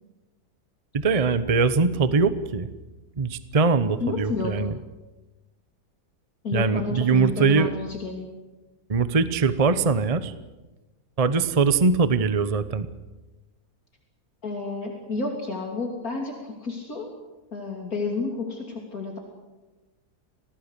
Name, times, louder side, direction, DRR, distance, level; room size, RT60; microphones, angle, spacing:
voice 1, 0.9-2.7 3.2-4.7 6.5-7.7 8.9-10.3 11.2-12.9, right 4 dB, 30° right, 13 dB, 0.9 m, -22 dB
voice 2, 4.0-4.6 6.4-8.3 14.4-17.1 17.5-19.2, left 4 dB, 60° left, 1 dB, 3.5 m, -30 dB
26.5 x 18.5 x 8.3 m, 1.1 s
omnidirectional pair, 1.7 m